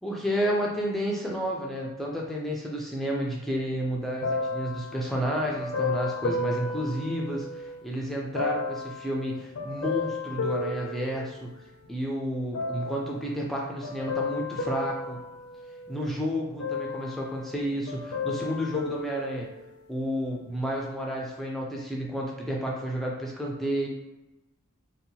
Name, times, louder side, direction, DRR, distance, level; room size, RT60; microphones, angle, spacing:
voice 1, 0.0-11.5 11.9-15.2 15.9-19.5 19.9-23.9, equal, ahead, -3 dB, 0.3 m, -31 dB
sound 1, 4.2-7.8 8.3-11.9 12.5-13.2 13.8-16.1 16.6-17.6 17.9-19.9 20.6-20.7, left 3 dB, 85° left, 0.5 m, -33 dB
2.7 x 2.2 x 2.7 m, 1.0 s
head